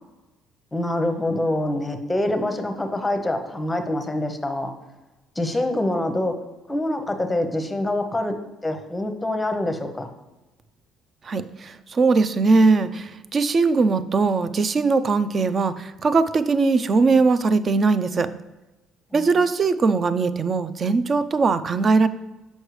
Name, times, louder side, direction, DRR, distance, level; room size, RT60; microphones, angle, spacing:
voice 1, 0.7-4.7 5.4-6.3 6.7-8.3 8.6-10.1 19.1-19.3, left 1 dB, 10° left, 6 dB, 0.8 m, -25 dB
voice 2, 11.2-18.3 19.1-22.1, right 4 dB, 35° right, 14 dB, 0.4 m, -20 dB
6.4 x 5.3 x 3.2 m, 1.1 s
cardioid pair, 110°, 0 cm